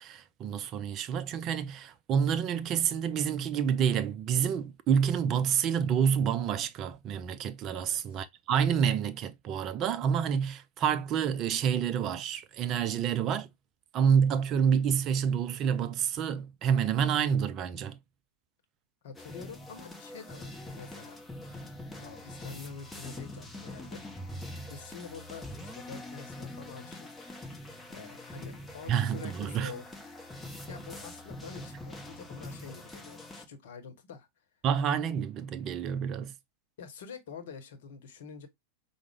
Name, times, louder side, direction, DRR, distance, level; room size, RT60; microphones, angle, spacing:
voice 1, 0.0-13.5 13.9-18.0 28.9-29.7 34.6-36.3, right 8 dB, 35° right, 0.4 m, -28 dB
voice 2, 7.7-8.2 19.0-21.2 21.9-24.0 24.7-27.5 27.9-29.9 30.7-34.3 36.8-38.5, left 6 dB, 55° left, 0.9 m, -47 dB
sound 1, 19.1-33.4, left 1 dB, 10° left, 0.8 m, -44 dB
4.9 x 2.1 x 3.3 m
figure-of-eight pair, 90°, 0 cm